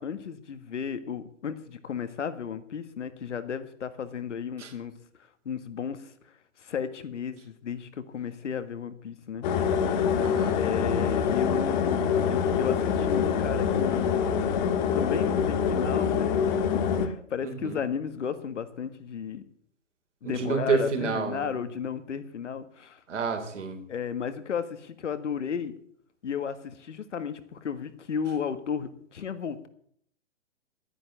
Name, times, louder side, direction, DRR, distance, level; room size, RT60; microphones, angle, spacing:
voice 1, 0.0-4.9 5.5-9.5 10.6-14.2 14.9-16.4 17.0-19.4 20.2-23.0 23.9-25.7 26.2-29.7, left 7 dB, 65° left, 12 dB, 1.7 m, -34 dB
sound 1, 9.4-17.1, left 7 dB, 35° left, 1.5 m, -25 dB
voice 2, 10.2-10.6 17.4-17.8 20.2-21.5 23.1-23.8, right 5 dB, 65° right, 5 dB, 3.7 m, -29 dB
11.0 x 10.0 x 8.6 m, 0.66 s
figure-of-eight pair, 130°, 38 cm